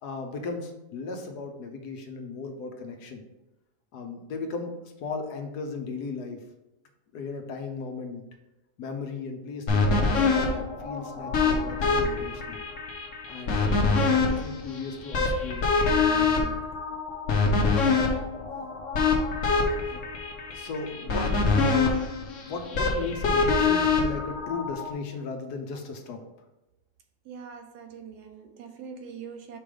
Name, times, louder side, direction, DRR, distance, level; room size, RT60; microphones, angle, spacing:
voice 1, 0.0-3.2 3.9-6.4 7.1-8.2 8.8-12.6 13.3-15.7 16.0-16.6 19.8-20.1 20.5-22.0 22.5-26.2, left 4 dB, 70° left, 4 dB, 1.3 m, -36 dB
sound 1, 9.7-24.9, left 4 dB, 55° left, 1.2 m, -25 dB
voice 2, 27.3-29.6, right 6 dB, 75° right, 6 dB, 1.2 m, -43 dB
5.2 x 3.7 x 4.9 m, 0.96 s
omnidirectional pair, 1.8 m